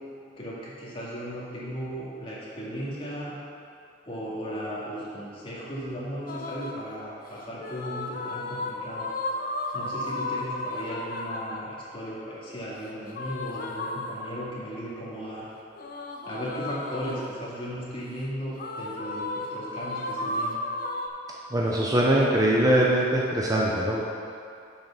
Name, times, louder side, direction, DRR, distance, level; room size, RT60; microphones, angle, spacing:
voice 1, 0.4-3.4 4.1-9.1 9.7-15.5 16.3-20.6, equal, 30° left, -7 dB, 2.0 m, -36 dB
sound 1, 6.3-6.9 7.6-11.7 13.1-14.6 15.8-17.5 18.6-21.1, left 2 dB, 50° left, 0.7 m, -34 dB
voice 2, 21.5-24.0, right 1 dB, 20° right, -3 dB, 0.6 m, -22 dB
7.4 x 5.7 x 5.8 m, 2.5 s
head